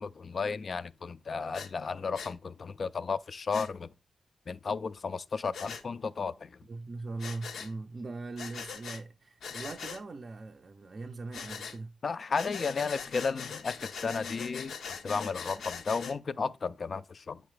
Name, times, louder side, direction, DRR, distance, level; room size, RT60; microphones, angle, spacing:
voice 1, 0.0-3.9 4.5-6.5 12.0-14.8 15.0-17.4, left 5 dB, 40° left, 0.3 m, -33 dB
Breathing, 1.5-1.7 2.2-2.3 3.5-3.7 5.5-5.8 7.2-7.7 8.4-9.0 9.4-10.0 11.3-11.8 12.3-16.2, left 6 dB, 90° left, 0.6 m, -41 dB
voice 2, 6.6-11.9, right 3 dB, 35° right, 0.4 m, -40 dB
9.3 x 3.9 x 3.2 m
wide cardioid pair, 145°, 0 cm